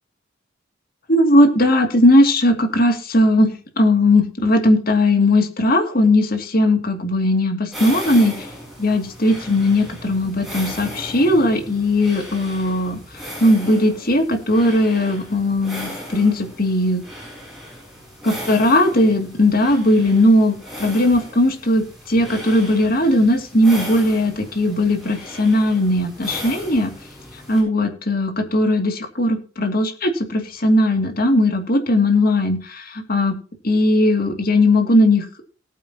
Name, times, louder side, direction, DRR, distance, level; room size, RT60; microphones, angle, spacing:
voice 1, 1.1-3.5 3.8-8.5 8.8-17.0 18.2-26.9 27.5-33.4 33.6-35.3, left 1 dB, 50° left, 5 dB, 2.5 m, -18 dB
sound 1, 7.7-27.6, equal, ahead, 7.1 m, -36 dB
19.5 x 8.7 x 2.9 m, 0.39 s
head